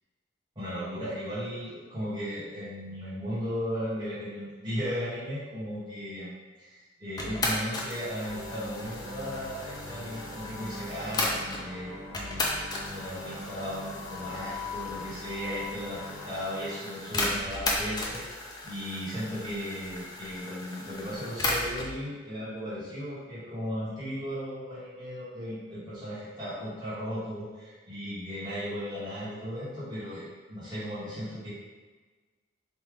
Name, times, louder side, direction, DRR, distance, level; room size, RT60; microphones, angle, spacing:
voice 1, 0.5-12.5 12.9-18.2 18.6-31.5, equal, 20° right, -12 dB, 1.2 m, -36 dB
sound 1, 7.2-11.6 12.1-21.9, left 2 dB, 20° left, 0.3 m, -35 dB
sound 2, 8.2-17.2, left 2 dB, 70° left, 0.9 m, -42 dB
3.2 x 2.2 x 3.5 m, 1.3 s
head